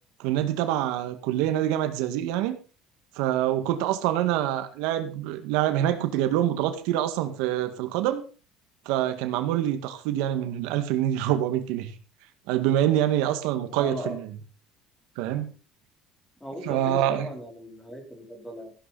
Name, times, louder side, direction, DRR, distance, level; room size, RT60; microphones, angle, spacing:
voice 1, 0.2-2.6 3.2-8.2 8.9-11.9 12.5-14.3 15.2-15.5 16.6-17.3, right 12 dB, 85° right, 9 dB, 1.9 m, -26 dB
voice 2, 13.7-14.2 16.4-18.7, equal, 5° left, 3 dB, 3.6 m, -37 dB
15.0 x 11.5 x 4.2 m, 0.34 s
cardioid pair, 175°, 0 cm